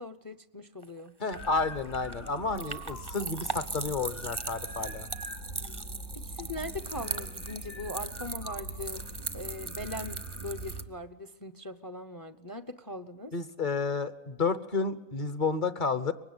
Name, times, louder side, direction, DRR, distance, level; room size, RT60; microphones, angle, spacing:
voice 1, 0.0-1.1 6.1-9.0 9.3-13.3, left 1 dB, 20° left, 11 dB, 0.7 m, -40 dB
sound 1, 0.8-10.8, right 3 dB, 20° right, 0.7 m, -39 dB
voice 2, 1.2-5.1 13.3-16.1, left 4 dB, 40° left, 12 dB, 1.1 m, -31 dB
sound 2, 1.3-10.9, right 1 dB, 85° left, 3.3 m, -42 dB
23.5 x 20.0 x 9.6 m, 1.1 s
omnidirectional pair, 1.4 m